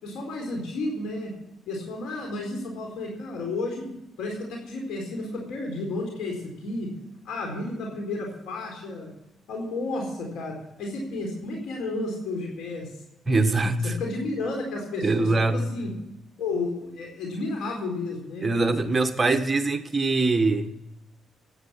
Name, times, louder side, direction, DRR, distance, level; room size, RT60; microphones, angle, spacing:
voice 1, 0.0-1.3 1.7-3.9 4.2-6.9 7.2-9.1 9.5-12.9 13.8-15.9 16.4-18.5, left 2 dB, 80° left, 4.1 m, -32 dB
voice 2, 13.3-14.0 15.0-15.6 18.4-20.7, right 3 dB, 25° right, 1.5 m, -23 dB
16.0 x 9.6 x 5.8 m
cardioid pair, 90°, 0 cm